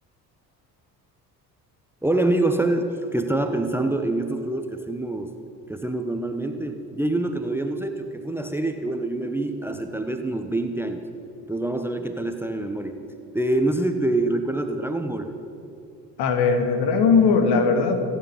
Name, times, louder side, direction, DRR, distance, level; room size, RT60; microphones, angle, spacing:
voice 1, 2.0-5.3 5.7-11.0 11.5-13.0 13.3-15.3, right 2 dB, 5° right, 7 dB, 1.0 m, -25 dB
voice 2, 16.2-18.0, left 5 dB, 55° left, 6 dB, 2.0 m, -19 dB
26.0 x 9.0 x 5.1 m, 2.9 s
figure-of-eight pair, 55°, 48 cm